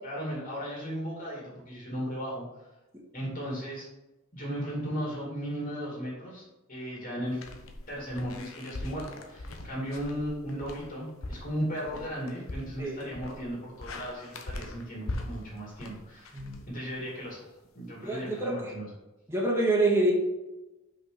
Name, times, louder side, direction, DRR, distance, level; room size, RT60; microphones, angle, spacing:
voice 1, 0.0-2.6 3.1-3.9 4.3-6.4 6.7-7.5 7.9-16.4 16.7-18.9, equal, 40° left, -4 dB, 2.4 m, -36 dB
sound 1, 7.3-17.2, left 2 dB, 80° left, 0.9 m, -41 dB
voice 2, 18.0-18.5 19.3-20.1, right 2 dB, 15° right, -3 dB, 1.6 m, -26 dB
6.0 x 5.2 x 4.9 m, 1.0 s
head